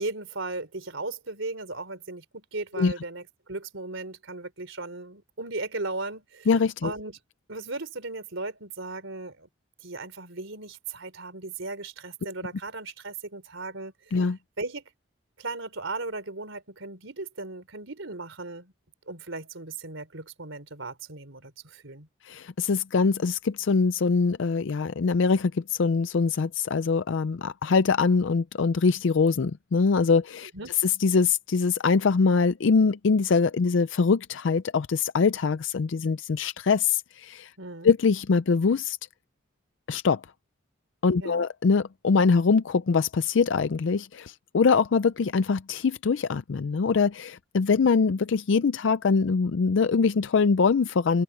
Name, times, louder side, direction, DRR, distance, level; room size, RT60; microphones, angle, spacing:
voice 1, 0.0-6.5 6.8-7.2 7.5-9.5 9.8-14.2 14.6-14.8 15.4-18.7 19.1-22.1 30.5-30.7 37.6-37.9 41.2-41.5, right 3 dB, 75° right, 3.6 m, -36 dB
voice 2, 6.5-6.9 14.1-14.4 22.3-30.5 31.0-37.5 37.8-39.0 39.9-40.2 41.0-51.2, left 5 dB, 70° left, 0.4 m, -23 dB
open air
head